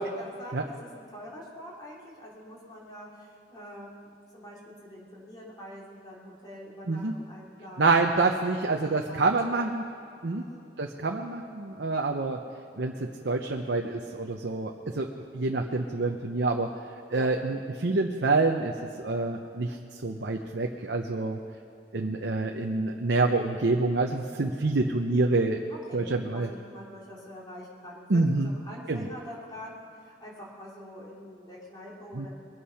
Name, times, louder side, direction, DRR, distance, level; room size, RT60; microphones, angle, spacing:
voice 1, 0.1-7.9 8.5-9.6 10.4-10.7 17.1-17.3 25.7-32.3, equal, 25° left, -5 dB, 3.1 m, -45 dB
voice 2, 7.8-9.8 10.2-10.4 10.8-12.4 12.8-16.7 17.1-18.7 19.0-19.8 20.0-21.4 21.9-25.6 25.9-26.5 28.1-28.5 28.9-29.1 32.1-32.3, right 3 dB, 75° right, 2 dB, 0.8 m, -27 dB
22.5 x 8.5 x 5.7 m, 2.5 s
head